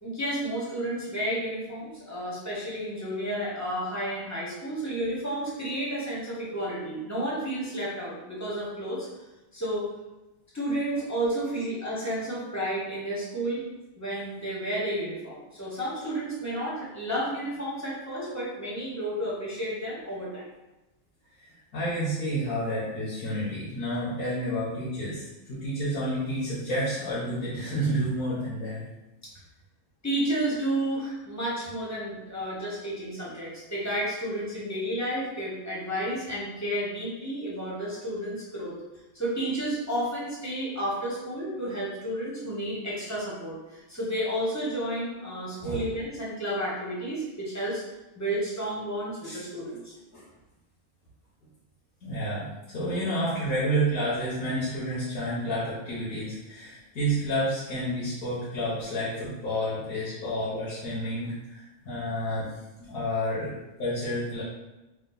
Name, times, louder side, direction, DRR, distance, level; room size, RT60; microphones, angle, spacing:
voice 1, 0.0-9.1 9.5-9.9 10.5-13.7 14.0-20.5 30.0-38.8 39.1-47.8 48.1-49.9, right 1 dB, 15° left, -6 dB, 1.0 m, -31 dB
voice 2, 21.7-28.8 45.6-45.8 49.2-49.4 50.1-50.2 52.0-63.5 63.8-64.4, equal, 90° left, -10 dB, 1.6 m, -30 dB
3.8 x 2.5 x 3.9 m, 1.0 s
omnidirectional pair, 1.5 m